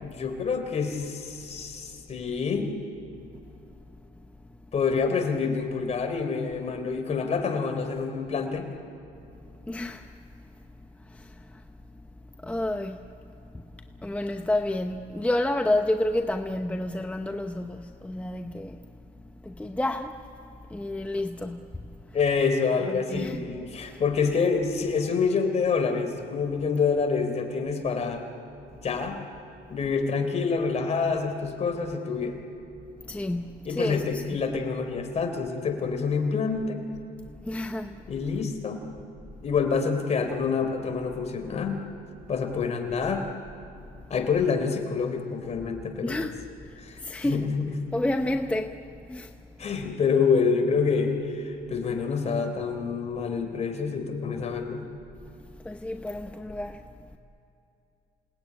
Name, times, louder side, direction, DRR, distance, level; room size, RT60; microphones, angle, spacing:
voice 1, 0.0-2.7 4.7-8.7 22.1-28.2 28.8-29.2 29.7-32.4 33.7-36.8 38.1-38.8 39.4-41.9 42.3-43.3 44.1-46.2 46.8-47.7 49.6-54.8, left 5 dB, 40° left, 3.8 m, -27 dB
voice 2, 9.7-10.1 11.1-11.6 12.4-13.0 13.5-18.8 19.4-20.2 20.7-22.2 22.9-24.0 33.1-34.2 37.4-38.0 46.0-47.5 47.9-48.8 49.1-49.3 55.6-56.9, left 1 dB, 10° left, 0.8 m, -30 dB
28.0 x 19.0 x 9.7 m
cardioid pair, 110°, 17 cm